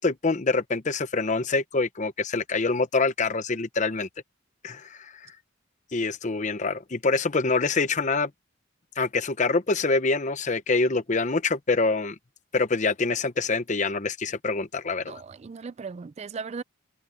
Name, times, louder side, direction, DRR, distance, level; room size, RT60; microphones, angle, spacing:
voice 1, 0.0-4.1 4.6-5.1 5.9-8.3 9.0-12.2 12.5-15.2, left 3 dB, 40° left, 0.8 m, -25 dB
voice 2, 15.1-16.6, right 5 dB, 35° right, 0.3 m, -37 dB
head